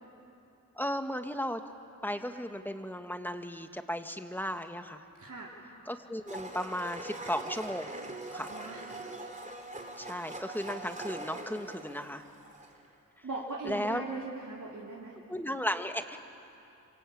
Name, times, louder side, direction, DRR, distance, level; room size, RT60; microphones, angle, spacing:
voice 1, 0.8-1.6 2.0-5.0 5.9-7.9 8.3-8.5 10.0-12.2 13.6-14.0 15.3-16.2, equal, 5° left, 7 dB, 1.8 m, -35 dB
voice 2, 5.2-5.5 8.4-8.9 13.2-15.2, right 3 dB, 55° right, -4 dB, 3.5 m, -39 dB
Domestic sounds home sounds, 6.3-12.9, right 2 dB, 20° right, 3.5 m, -42 dB
27.0 x 24.0 x 8.6 m, 2.9 s
cardioid pair, 50°, 35 cm